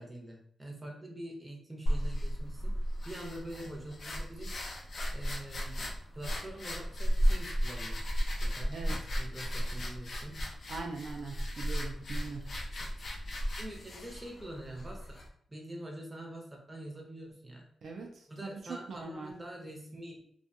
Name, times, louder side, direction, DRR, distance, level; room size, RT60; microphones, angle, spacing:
voice 1, 0.0-2.7 3.0-4.6 5.1-8.0 8.4-8.9 9.2-10.4 11.1-11.5 13.6-15.2 15.5-17.6 18.3-20.2, right 1 dB, 15° right, -1 dB, 0.8 m, -45 dB
sound 1, 1.9-15.3, equal, 55° left, 0.5 m, -34 dB
voice 2, 10.7-12.5 17.8-19.3, right 4 dB, 65° right, 1 dB, 0.4 m, -41 dB
2.4 x 2.3 x 2.7 m, 0.66 s
cardioid pair, 85°, 0 cm